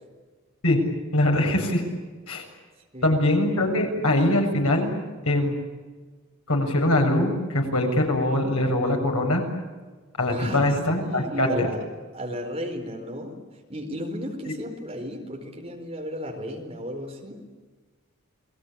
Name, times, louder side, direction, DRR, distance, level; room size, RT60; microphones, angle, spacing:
voice 1, 1.1-1.8 2.3-2.4 3.0-4.9 5.3-5.6 6.5-9.4 10.2-11.7, left 1 dB, 85° left, 2 dB, 7.3 m, -22 dB
voice 2, 10.3-11.9 12.1-13.4 13.7-17.4, equal, 25° right, 3 dB, 4.4 m, -34 dB
29.5 x 21.0 x 8.8 m, 1.4 s
head